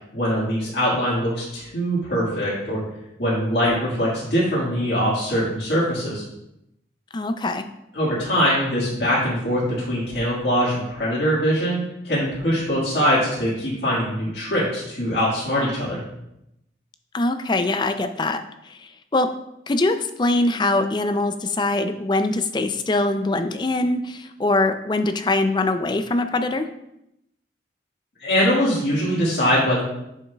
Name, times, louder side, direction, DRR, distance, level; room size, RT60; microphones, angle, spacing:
voice 1, 0.1-2.8 3.2-6.2 7.9-16.0 28.2-29.8, equal, 70° left, -8 dB, 1.8 m, -22 dB
voice 2, 7.1-7.7 17.1-18.4 18.7-19.3 19.7-26.7, left 2 dB, 25° left, 8 dB, 0.4 m, -23 dB
7.2 x 6.5 x 2.3 m, 0.84 s
head